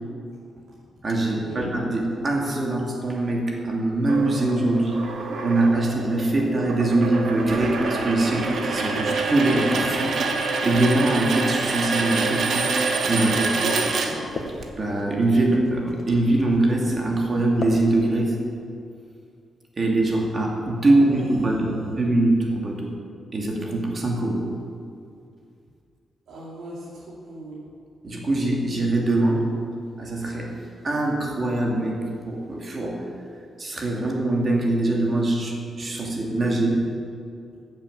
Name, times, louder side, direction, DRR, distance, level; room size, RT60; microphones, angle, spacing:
voice 1, 1.0-10.2 10.6-12.8 13.0-13.6 14.8-18.4 19.8-22.9 23.3-24.5 28.0-29.5 30.0-33.1 33.6-36.9, right 2 dB, 35° right, -1 dB, 2.3 m, -23 dB
sound 1, 4.1-14.7, right 3 dB, 60° right, 1.4 m, -26 dB
sound 2, 7.4-18.4, left 3 dB, 45° left, 1.4 m, -40 dB
voice 2, 13.6-14.2 20.9-22.0 26.3-27.6, right 2 dB, 80° right, -7 dB, 2.7 m, -36 dB
14.5 x 7.4 x 7.4 m, 2.4 s
wide cardioid pair, 140°, 0 cm